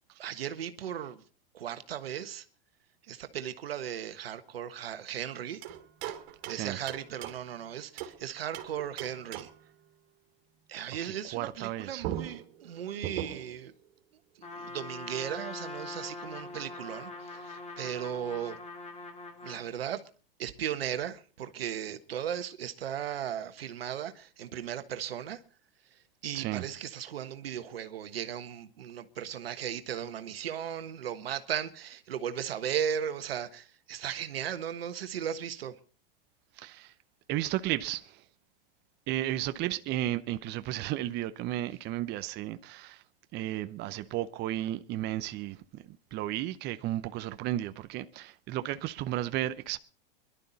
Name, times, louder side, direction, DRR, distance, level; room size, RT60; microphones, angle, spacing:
voice 1, 0.2-1.2 1.5-2.4 3.0-5.6 6.4-9.5 10.7-13.7 14.3-18.6 19.4-20.1 20.4-25.4 25.9-35.8, right 9 dB, 85° right, 1.4 m, -36 dB
sound 1, 5.6-8.2 8.5-9.7 11.6-11.7 12.0-13.6, right 12 dB, 55° right, 2.8 m, -40 dB
voice 2, 11.0-12.0 26.3-26.7 36.6-36.9 37.3-38.2 39.1-43.0 43.3-49.8, right 14 dB, 35° right, 0.7 m, -34 dB
Trumpet, 14.4-19.7, left 3 dB, 25° left, 2.3 m, -43 dB
22.0 x 12.0 x 4.1 m
hypercardioid pair, 115°, 29 cm